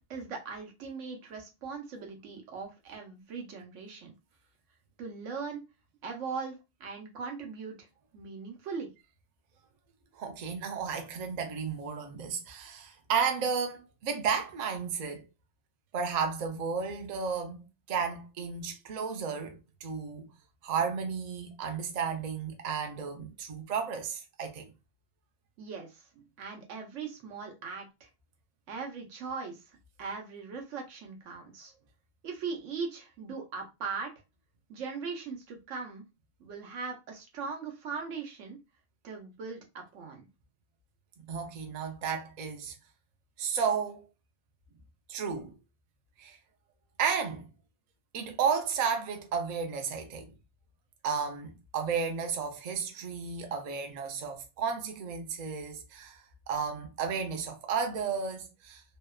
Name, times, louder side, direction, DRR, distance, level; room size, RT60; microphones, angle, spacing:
voice 1, 0.1-4.1 5.0-5.6 6.0-7.9 8.1-8.9 25.6-28.1 28.7-29.6 30.0-31.7 32.2-34.1 34.7-36.0 36.4-38.6 39.0-40.3, right 5 dB, 85° right, 1.1 m, -39 dB
voice 2, 10.1-15.2 15.9-17.6 17.9-20.3 20.6-24.7 41.2-42.8 43.4-44.1 45.1-45.5 46.2-46.4 47.0-47.5 48.1-50.3 51.0-56.2 56.5-58.8, right 6 dB, 55° right, 0.5 m, -33 dB
2.8 x 2.1 x 2.2 m
omnidirectional pair, 1.2 m